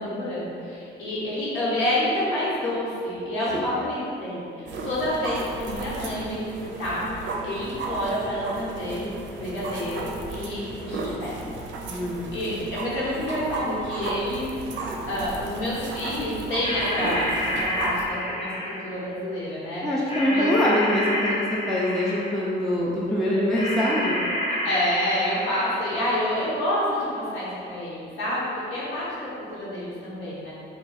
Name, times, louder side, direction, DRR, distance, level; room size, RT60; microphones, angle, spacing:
voice 1, 0.0-9.1 9.4-11.3 12.3-14.5 15.1-17.3 17.6-19.8 20.3-20.5 24.6-30.5, left 1 dB, 85° left, -9 dB, 1.1 m, -28 dB
sound 1, 4.6-18.0, right 3 dB, 70° right, 0.5 m, -34 dB
voice 2, 11.9-12.7 19.8-21.4 21.7-24.2, left 1 dB, ahead, -7 dB, 0.4 m, -24 dB
sound 2, 16.6-19.0 20.1-22.5 23.5-26.0, left 1 dB, 30° left, 0.8 m, -29 dB
2.4 x 2.3 x 4.0 m, 2.5 s
cardioid pair, 90°, 20 cm